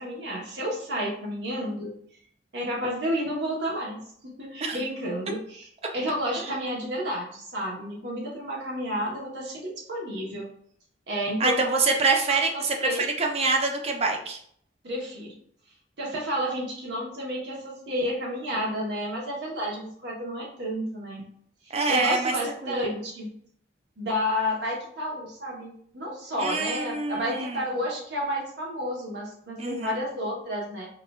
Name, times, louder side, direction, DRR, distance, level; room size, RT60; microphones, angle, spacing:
voice 1, 0.0-2.0 2.5-5.7 5.9-10.5 11.1-11.6 12.3-13.1 14.8-15.3 16.0-21.3 21.7-23.3 24.0-30.9, equal, 70° right, -2 dB, 1.1 m, -31 dB
voice 2, 11.4-14.4 21.7-22.3 22.6-22.8 26.4-27.7 29.6-30.0, right 3 dB, 35° right, 3 dB, 0.5 m, -26 dB
4.6 x 2.4 x 2.3 m, 0.64 s
head